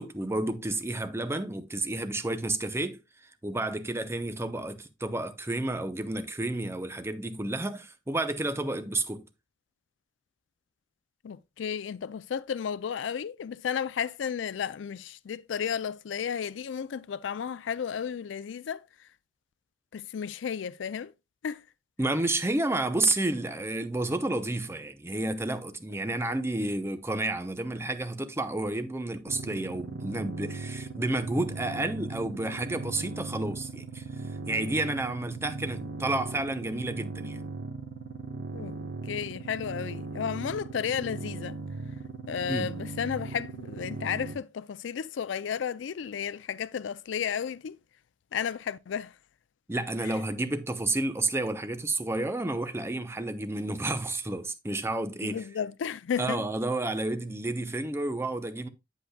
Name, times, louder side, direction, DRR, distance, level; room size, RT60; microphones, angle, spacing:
voice 1, 0.0-3.0 3.4-9.3 22.0-34.0 34.5-37.4 42.5-42.7 49.7-55.4 56.2-58.7, right 2 dB, 15° right, 0.6 m, -31 dB
voice 2, 11.2-19.1 19.9-21.1 21.4-21.6 38.5-38.8 39.0-41.6 42.3-47.8 48.3-49.2 50.0-50.2 55.2-56.4, left 7 dB, 90° left, 0.4 m, -33 dB
sound 1, 29.3-44.3, right 3 dB, 70° right, 1.1 m, -38 dB
8.3 x 7.8 x 2.2 m
head